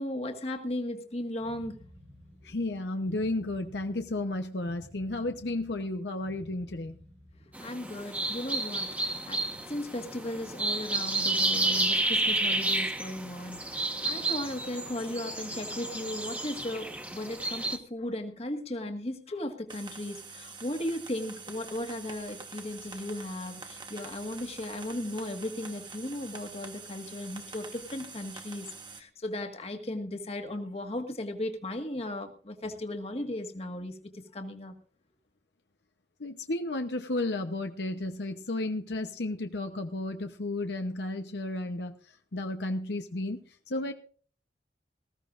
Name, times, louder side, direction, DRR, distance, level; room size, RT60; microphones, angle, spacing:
voice 1, 0.0-1.8 7.6-28.7 29.0-34.8, left 1 dB, 35° left, 4 dB, 1.7 m, -36 dB
sound 1, 1.4-7.7, left 1 dB, 60° right, 3.3 m, -53 dB
voice 2, 2.4-6.9 36.2-41.9 42.3-43.9, left 2 dB, 75° left, 6 dB, 0.9 m, -33 dB
sound 2, 7.5-17.8, right 2 dB, 10° right, 1.2 m, -31 dB
sound 3, 19.7-29.0, right 4 dB, 25° right, 1.3 m, -46 dB
19.5 x 15.0 x 2.5 m, 0.44 s
head